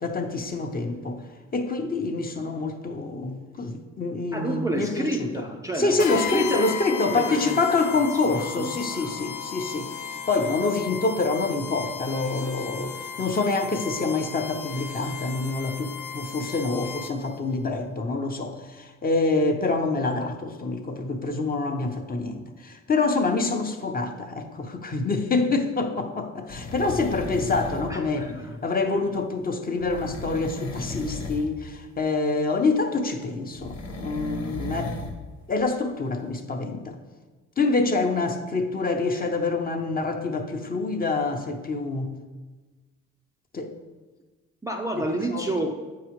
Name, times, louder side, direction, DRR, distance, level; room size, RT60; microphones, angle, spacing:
voice 1, 0.0-1.2 1.5-5.4 5.8-9.9 10.3-28.3 28.6-34.9 35.5-37.0 37.6-42.1 43.5-43.7 45.0-45.5, left 3 dB, 30° left, 5 dB, 0.7 m, -26 dB
voice 2, 4.3-6.6 7.1-9.3 27.9-28.6 44.6-45.7, right 2 dB, 10° right, 2 dB, 0.4 m, -30 dB
sound 1, 6.0-17.4, left 7 dB, 75° left, 0.5 m, -35 dB
sound 2, 26.5-28.0 29.8-31.5 33.5-35.2 35.6-35.7, left 2 dB, 60° left, 0.9 m, -35 dB
8.1 x 4.7 x 3.1 m, 1.3 s
cardioid pair, 90°, 30 cm